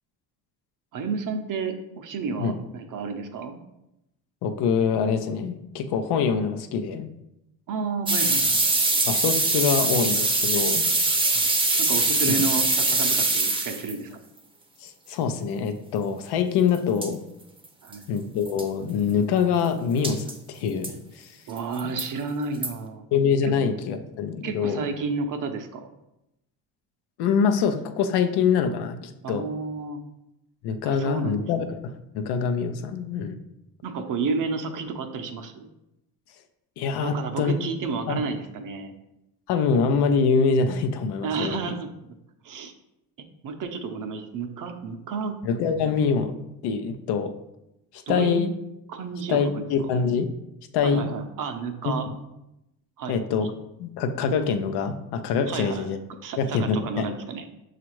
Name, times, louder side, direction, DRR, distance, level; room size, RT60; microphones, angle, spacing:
voice 1, 0.9-3.6 7.7-8.7 11.3-11.5 11.8-14.1 17.8-18.1 21.5-23.0 23.4-23.5 24.4-25.9 29.2-30.0 30.8-31.5 33.8-35.7 37.0-38.9 41.2-41.9 42.4-42.7 43.4-45.4 48.1-48.4 48.9-49.9 50.8-52.1 53.0-53.2 55.5-55.9 56.2-57.5, right 4 dB, 50° right, 6 dB, 0.6 m, -31 dB
voice 2, 4.4-7.1 9.0-10.9 12.2-12.3 14.8-17.2 18.1-21.4 21.8-21.9 23.1-24.9 27.2-29.5 30.6-33.4 36.8-37.5 38.1-38.2 39.5-41.6 45.4-46.3 46.6-47.3 47.9-48.5 49.3-50.3 50.7-51.1 51.9-52.0 53.1-53.5 53.8-56.0 56.4-57.1, left 6 dB, 75° left, 8 dB, 0.6 m, -25 dB
sound 1, 8.1-13.9 16.7-16.8 17.0-17.1 17.6-17.7 17.9-18.0 18.4-18.6 20.0-20.3 20.8-20.9 21.6-22.1 22.6-22.7, right 2 dB, 15° right, 0.6 m, -23 dB
6.1 x 2.5 x 3.0 m, 0.88 s
supercardioid pair, 85°, 40 cm